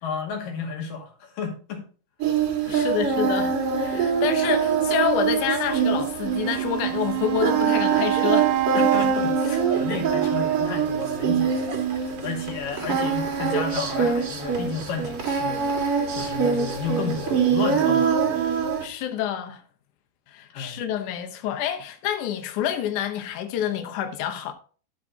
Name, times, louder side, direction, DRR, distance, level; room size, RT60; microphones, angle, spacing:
voice 1, 0.0-1.8 2.6-3.0 8.7-18.4 20.5-20.8, left 5 dB, 55° left, 3.5 m, -32 dB
Singing, 2.2-18.8, right 6 dB, 50° right, 1.9 m, -24 dB
voice 2, 2.7-8.5 18.8-19.6 20.3-24.5, left 10 dB, 75° left, 1.8 m, -28 dB
Wind instrument woodwind instrument, 6.3-11.3, right 17 dB, 80° right, 2.6 m, -27 dB
12.5 x 8.6 x 2.8 m
omnidirectional pair, 5.0 m